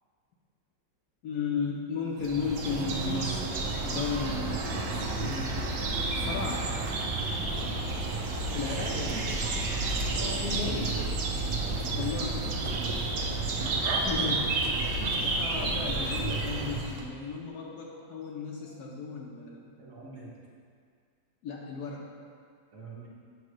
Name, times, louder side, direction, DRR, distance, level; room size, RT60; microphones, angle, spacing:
voice 1, 1.2-3.4 3.8-5.8 6.1-6.7 8.5-8.9 10.4-10.9 11.9-12.4 13.9-14.9 15.2-19.7 21.4-22.0, left 5 dB, 65° left, -1 dB, 1.2 m, -34 dB
sound 1, 2.2-17.1, right 2 dB, 70° right, 1.3 m, -30 dB
voice 2, 7.5-7.8 8.7-9.4 10.1-11.0 11.5-11.9 13.4-13.8 15.0-15.2 15.6-15.9 17.9-18.1 18.6-18.9 19.8-20.3 22.7-23.1, right 2 dB, 50° right, -5 dB, 1.4 m, -43 dB
8.4 x 3.2 x 6.1 m, 2.1 s
omnidirectional pair, 2.0 m